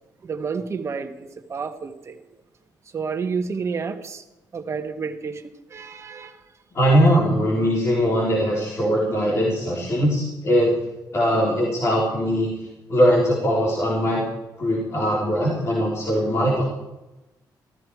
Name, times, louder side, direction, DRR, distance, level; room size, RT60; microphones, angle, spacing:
voice 1, 0.2-2.2 2.9-4.2 4.5-6.4, right 5 dB, 40° right, 7 dB, 1.3 m, -30 dB
voice 2, 6.7-10.7 11.1-14.3 14.6-16.6, equal, 40° left, -4 dB, 3.7 m, -21 dB
15.5 x 13.5 x 4.8 m, 1.0 s
cardioid pair, 110°, 7 cm